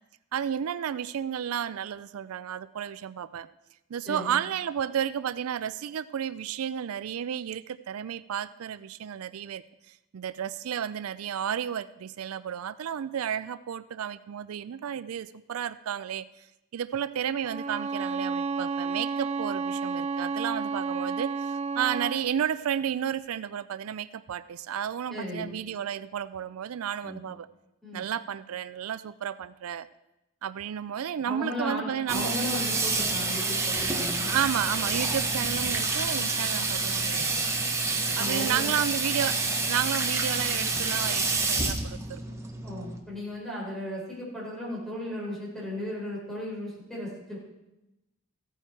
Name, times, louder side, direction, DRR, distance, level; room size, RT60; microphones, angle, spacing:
voice 1, 0.3-3.5 3.9-16.5 16.7-27.5 27.9-29.9 30.4-32.4 34.3-37.3 38.2-42.2, right 9 dB, 85° right, 16 dB, 0.4 m, -32 dB
voice 2, 4.0-4.4 25.1-25.5 27.0-27.2 27.8-28.0 31.3-34.4 38.2-38.7 42.6-47.4, left 1 dB, ahead, -5 dB, 4.9 m, -35 dB
Bowed string instrument, 17.4-22.3, right 4 dB, 30° right, 0.6 m, -31 dB
Water tap faucet / Sink (filling or washing), 32.1-43.0, right 3 dB, 15° right, 1.1 m, -28 dB
15.0 x 9.1 x 4.6 m, 0.94 s
head